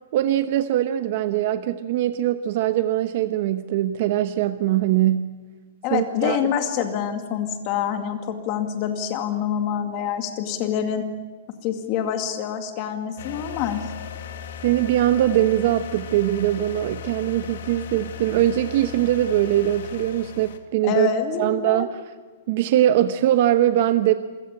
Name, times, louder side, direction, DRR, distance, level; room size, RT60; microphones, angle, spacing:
voice 1, 0.1-5.3 5.9-6.4 14.6-21.1 21.4-22.0 22.5-24.1, right 13 dB, 45° right, 10 dB, 0.9 m, -21 dB
voice 2, 5.8-11.1 11.6-13.9 20.8-21.9, left 8 dB, 30° left, 6 dB, 2.3 m, -26 dB
sound 1, 13.2-20.6, left 8 dB, 65° left, 2.2 m, -37 dB
26.5 x 17.0 x 8.8 m, 1.4 s
hypercardioid pair, 170°, 0 cm